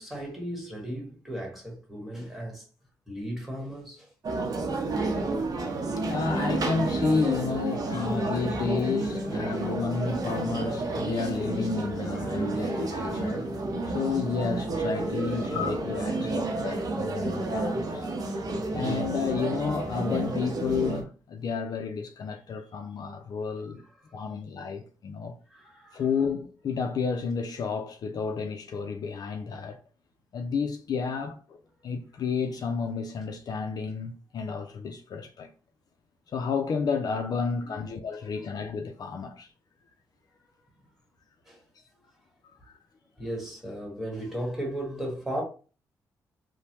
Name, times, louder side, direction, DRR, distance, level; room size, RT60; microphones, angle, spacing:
voice 1, 0.0-2.7 3.1-4.1 8.0-8.2 12.2-13.4 15.2-15.6 16.0-16.1 18.1-18.8 23.5-23.7 24.0-24.1 25.5-26.0 37.6-37.8 41.4-41.6 43.2-45.4, right 1 dB, ahead, 1.4 m, -37 dB
sound 1, 4.2-21.0, right 2 dB, 60° right, 0.7 m, -30 dB
voice 2, 5.5-18.1 18.7-23.8 24.1-25.4 25.9-29.8 30.3-35.5 36.3-39.5 42.7-42.8, left 5 dB, 60° left, 0.4 m, -31 dB
3.0 x 2.1 x 2.8 m
cardioid pair, 65°, 7 cm